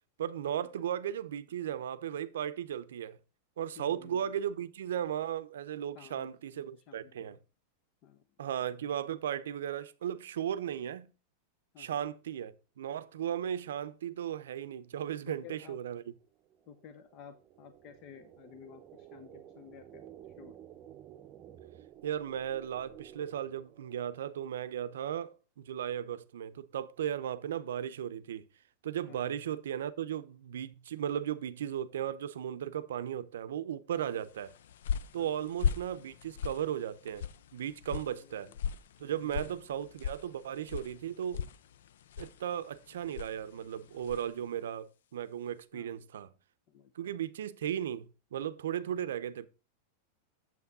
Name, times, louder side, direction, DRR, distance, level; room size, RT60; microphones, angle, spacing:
voice 1, 0.2-3.2 3.6-7.4 8.4-11.1 11.8-16.0 22.0-28.5 28.8-34.5 35.1-37.2 37.5-38.5 39.0-41.5 42.2-46.3 47.0-49.5, right 10 dB, 90° right, 0.6 m, -36 dB
voice 2, 3.8-4.3 5.9-7.4 8.0-8.2 11.7-12.0 15.3-15.8 16.7-20.0 20.4-20.6 29.1-29.3 33.9-34.2 35.2-35.5 38.1-38.6 39.2-39.6 45.7-46.0 46.7-47.2, left 8 dB, 40° left, 0.7 m, -53 dB
sound 1, 15.6-24.2, right 11 dB, 30° right, 0.7 m, -54 dB
sound 2, 34.3-44.4, left 7 dB, 85° left, 0.4 m, -39 dB
7.3 x 5.9 x 4.0 m
supercardioid pair, 150°, 0 cm